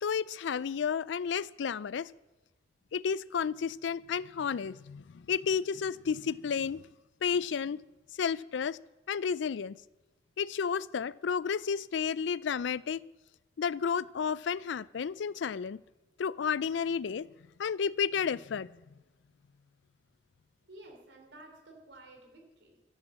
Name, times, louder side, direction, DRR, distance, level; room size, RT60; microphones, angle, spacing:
voice 1, 0.0-2.1 2.9-6.8 7.2-7.8 8.2-8.8 9.1-9.8 10.4-13.0 13.6-15.8 16.2-17.3 17.6-18.7, left 6 dB, 75° left, 0.4 m, -32 dB
voice 2, 20.7-22.8, right 1 dB, 70° right, 3.6 m, -53 dB
13.5 x 10.5 x 7.3 m
head